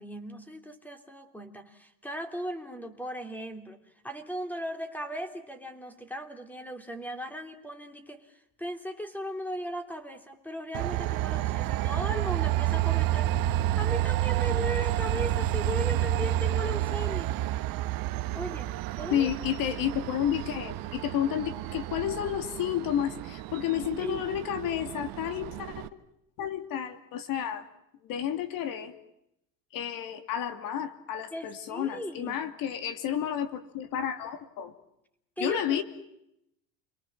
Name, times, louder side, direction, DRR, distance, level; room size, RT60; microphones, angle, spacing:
voice 1, 0.0-17.3 18.3-18.7 19.0-19.3 24.0-24.3 31.3-32.4 35.4-35.8, equal, 5° left, 8 dB, 3.2 m, -37 dB
Train, 10.7-25.9, right 14 dB, 60° right, 1.4 m, -30 dB
voice 2, 19.1-25.9 26.4-27.7 28.0-28.9 29.7-34.7 35.4-35.8, left 10 dB, 55° left, 10 dB, 2.8 m, -31 dB
29.0 x 23.0 x 7.5 m, 0.81 s
supercardioid pair, 130°, 39 cm